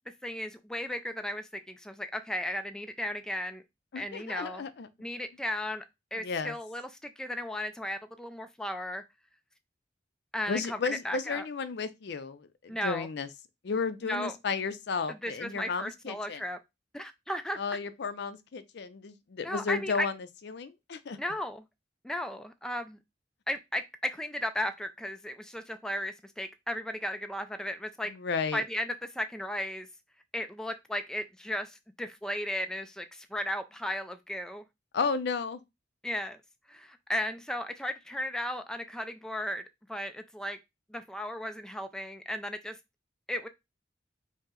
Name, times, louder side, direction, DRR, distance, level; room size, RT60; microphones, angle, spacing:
voice 1, 0.2-3.6 4.0-4.7 5.0-5.8 6.1-9.0 10.3-10.8 11.0-11.5 12.7-13.1 14.0-14.3 15.1-16.6 16.9-17.6 19.4-20.1 21.2-21.6 22.0-23.0 23.5-28.1 28.5-29.9 30.3-34.6 36.0-36.4 36.7-39.6 39.9-40.6 40.9-42.8 43.3-43.5, left 1 dB, 5° left, 0.3 m, -35 dB
voice 2, 3.9-4.9 6.1-6.5 10.5-13.3 13.6-16.4 17.6-20.1 20.4-21.2 28.1-28.6 34.9-35.6, left 5 dB, 65° left, 0.5 m, -33 dB
5.2 x 2.0 x 3.7 m
head